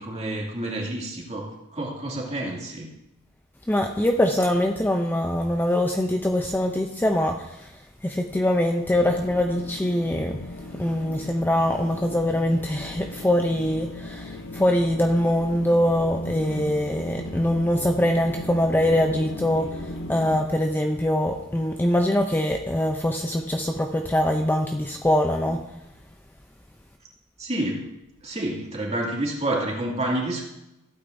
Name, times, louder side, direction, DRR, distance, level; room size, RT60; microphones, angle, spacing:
voice 1, 0.0-2.9 27.4-27.9 28.2-30.4, right 1 dB, 30° right, -2 dB, 2.5 m, -29 dB
voice 2, 3.7-25.6, left 1 dB, 10° left, 3 dB, 0.5 m, -23 dB
sound 1, 8.9-20.4, left 1 dB, 60° left, 1.1 m, -37 dB
15.5 x 8.9 x 2.6 m, 0.92 s
head